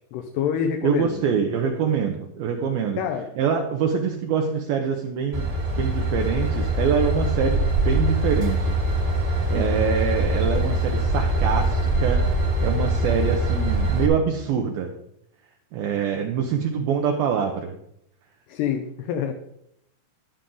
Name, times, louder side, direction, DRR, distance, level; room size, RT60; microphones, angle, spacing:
voice 1, 0.0-1.2 3.0-3.3 9.5-9.9 18.5-19.3, left 8 dB, 80° left, 4 dB, 2.8 m, -27 dB
voice 2, 0.8-3.0 3.4-8.8 9.5-14.9 15.7-17.8, right 6 dB, 75° right, 2 dB, 2.3 m, -25 dB
Train / Engine, 5.3-14.1, right 1 dB, 40° right, 1.6 m, -23 dB
11.0 x 10.0 x 3.9 m, 0.74 s
omnidirectional pair, 5.1 m